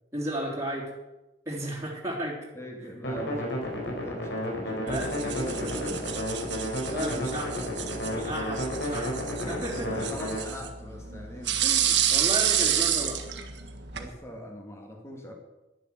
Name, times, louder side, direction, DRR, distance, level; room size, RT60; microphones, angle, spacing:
voice 1, 0.1-0.9 1.4-2.4 2.8-2.9 4.6-5.9 6.8-7.6 8.1-10.0 11.6-13.2, right 1 dB, 15° right, -5 dB, 3.2 m, -34 dB
voice 2, 2.5-6.1 6.8-8.1 8.9-11.7 13.9-15.3, equal, 15° left, 2 dB, 2.4 m, -42 dB
sound 1, 3.0-10.4, left 1 dB, 75° left, 4.6 m, -32 dB
sound 2, 4.9-14.1, right 9 dB, 75° right, 1.5 m, -30 dB
11.0 x 10.5 x 7.8 m, 1.0 s
head